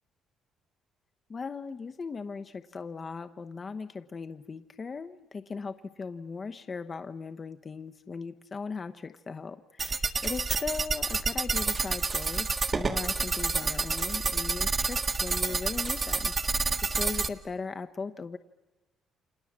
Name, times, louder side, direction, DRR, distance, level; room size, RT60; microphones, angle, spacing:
voice 1, 1.3-18.4, left 4 dB, 35° left, 8 dB, 0.9 m, -38 dB
sound 1, 9.8-17.3, right 4 dB, 35° right, 1.5 m, -29 dB
29.5 x 26.0 x 7.4 m, 1.2 s
cardioid pair, 95°, 0 cm